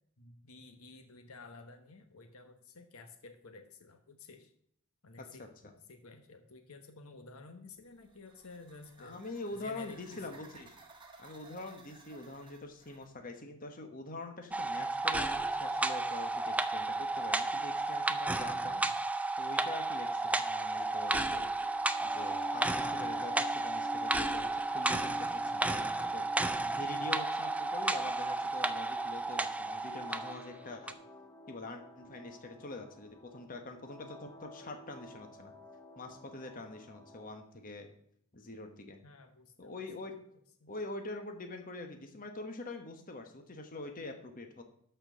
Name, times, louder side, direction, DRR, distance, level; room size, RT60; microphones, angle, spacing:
voice 1, 0.2-4.5 5.0-9.2 9.5-10.4 39.0-39.8 40.6-40.7, left 3 dB, 75° left, 7 dB, 1.1 m, -52 dB
voice 2, 5.2-5.7 9.0-10.7 11.2-18.8 19.4-21.5 22.0-31.0 31.5-35.5 36.0-37.9 38.3-39.0 39.6-40.1 40.7-44.6, left 2 dB, 40° left, 5 dB, 1.2 m, -45 dB
sound 1, 7.8-13.1, right 3 dB, 20° right, 1.3 m, -58 dB
sound 2, 14.5-30.4 30.9-31.0, right 2 dB, 5° right, 0.4 m, -33 dB
sound 3, 21.6-37.5, left 2 dB, 15° left, 0.9 m, -50 dB
12.0 x 4.5 x 6.2 m, 0.67 s
head